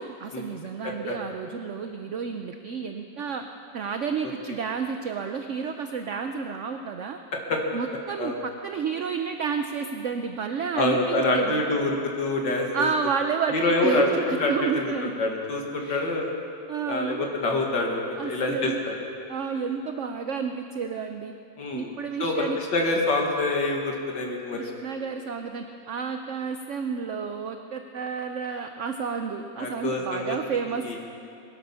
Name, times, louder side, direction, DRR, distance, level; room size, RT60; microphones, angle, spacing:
voice 1, 0.0-3.4 3.7-7.2 7.7-11.6 12.7-15.2 15.8-16.1 16.7-17.3 18.2-18.8 19.3-21.3 21.7-22.6 24.5-31.0, right 6 dB, 60° right, 6 dB, 0.8 m, -31 dB
voice 2, 0.8-1.1 7.5-7.6 8.2-8.3 10.7-11.9 12.2-12.9 13.5-16.3 16.9-19.0 21.6-21.9 22.2-24.7 29.6-30.4 30.8-31.0, left 2 dB, 75° left, 0 dB, 2.7 m, -26 dB
22.0 x 11.5 x 5.6 m, 2.6 s
omnidirectional pair, 1.9 m